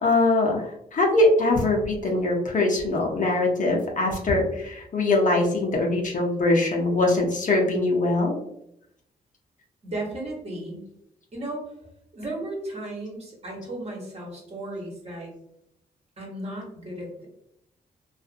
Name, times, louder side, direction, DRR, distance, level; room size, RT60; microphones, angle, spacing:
voice 1, 0.0-8.4, left 2 dB, 50° left, 0 dB, 0.7 m, -22 dB
voice 2, 9.8-10.8 11.3-11.6 12.1-15.3 16.2-17.3, right 1 dB, 40° right, -2 dB, 1.2 m, -35 dB
2.6 x 2.4 x 2.5 m, 0.76 s
cardioid pair, 75°, 17 cm